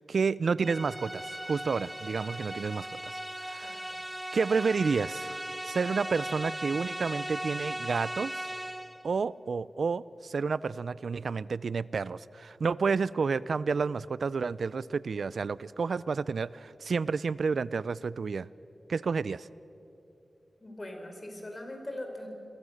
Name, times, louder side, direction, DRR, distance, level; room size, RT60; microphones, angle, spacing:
voice 1, 0.0-3.8 4.3-8.5 9.0-18.5 18.9-19.5, right 5 dB, 75° right, 19 dB, 0.5 m, -30 dB
sound 1, 0.6-9.1, right 1 dB, 10° right, 0.7 m, -38 dB
voice 2, 20.6-22.3, left 1 dB, 30° left, 3 dB, 4.6 m, -41 dB
29.0 x 22.5 x 6.5 m, 3.0 s
wide cardioid pair, 75°, 0 cm